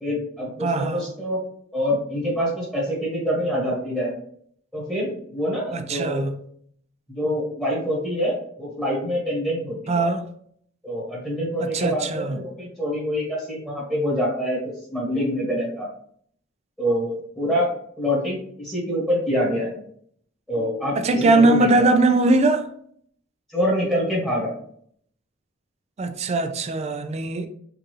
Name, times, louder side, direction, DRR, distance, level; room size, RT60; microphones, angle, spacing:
voice 1, 0.0-1.4 1.7-4.1 4.7-6.3 7.1-10.1 10.8-15.9 16.8-19.8 20.5-21.9 23.5-24.5, equal, ahead, 1.3 m, -26 dB
voice 2, 0.6-1.0 5.7-6.3 9.9-10.2 11.7-12.4 21.0-22.7 26.0-27.5, right 2 dB, 30° right, 0.4 m, -20 dB
4.6 x 2.6 x 3.1 m
head